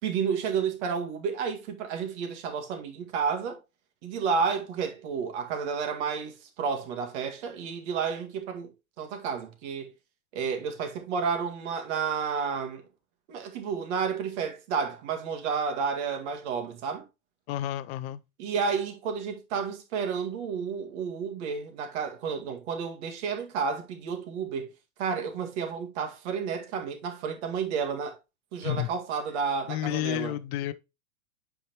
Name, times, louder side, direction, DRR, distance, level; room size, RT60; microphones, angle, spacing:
voice 1, 0.0-3.6 4.0-8.7 9.0-9.9 10.3-12.8 13.3-17.0 18.4-24.7 25.0-28.2 28.5-30.3, right 6 dB, 50° right, 2.0 m, -31 dB
voice 2, 17.5-18.2 28.6-28.9 29.7-30.7, left 13 dB, 45° left, 0.7 m, -30 dB
8.7 x 4.8 x 2.9 m
hypercardioid pair, 135°, 42 cm